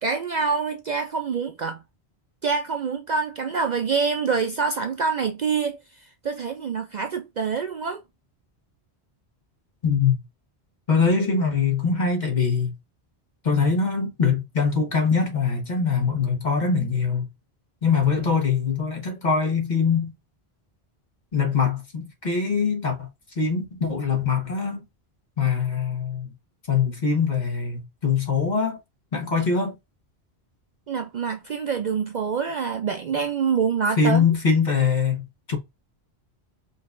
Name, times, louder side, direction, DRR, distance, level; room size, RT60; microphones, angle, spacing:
voice 1, 0.0-1.8 2.4-8.0 30.9-34.2, right 5 dB, 55° right, 0.5 m, -26 dB
voice 2, 9.8-10.1 10.9-12.7 13.4-17.2 17.8-20.1 21.3-23.1 23.4-24.8 25.4-26.3 26.7-28.8 29.1-29.8 34.0-35.6, left 5 dB, 45° left, 1.4 m, -23 dB
5.3 x 2.8 x 2.5 m
omnidirectional pair, 1.1 m